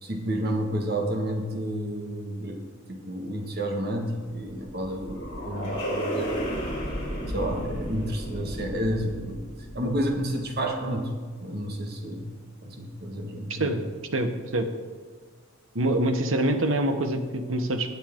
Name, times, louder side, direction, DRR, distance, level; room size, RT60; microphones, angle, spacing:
voice 1, 0.0-2.6 2.9-6.6 7.3-9.4 9.7-12.3 12.6-13.8, right 1 dB, 55° right, 2 dB, 1.8 m, -30 dB
sound 1, 4.2-10.6, equal, 55° left, 3.9 m, -33 dB
voice 2, 14.1-14.7 15.7-17.9, right 1 dB, 75° right, 6 dB, 1.2 m, -25 dB
18.5 x 7.1 x 3.8 m, 1.5 s
head